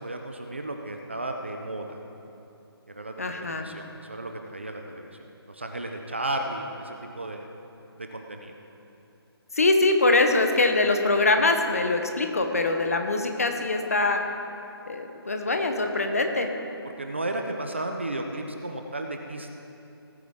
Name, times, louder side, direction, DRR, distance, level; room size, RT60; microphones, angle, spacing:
voice 1, 0.0-2.0 2.9-5.2 5.5-7.5 8.0-8.6 16.8-19.6, right 1 dB, 25° right, 4 dB, 0.5 m, -34 dB
voice 2, 3.2-3.7 9.5-14.2 14.9-16.5, left 2 dB, 35° left, 5 dB, 0.9 m, -23 dB
18.0 x 9.3 x 3.6 m, 2.9 s
hypercardioid pair, 180°, 14 cm